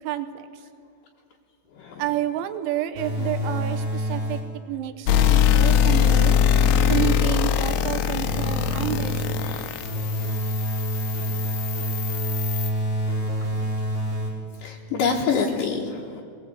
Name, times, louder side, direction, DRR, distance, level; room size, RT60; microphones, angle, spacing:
voice 1, 0.0-0.6 2.0-6.4 6.9-9.5, right 12 dB, 80° right, 10 dB, 3.4 m, -30 dB
sound 1, 2.9-4.6 5.1-7.6 8.2-14.6, equal, 35° right, 0.9 m, -28 dB
sound 2, 5.1-12.7, left 9 dB, 80° left, 2.7 m, -22 dB
voice 2, 9.4-9.8 14.6-16.2, left 5 dB, 65° left, -3 dB, 2.4 m, -26 dB
23.0 x 19.5 x 7.9 m, 2.5 s
omnidirectional pair, 5.5 m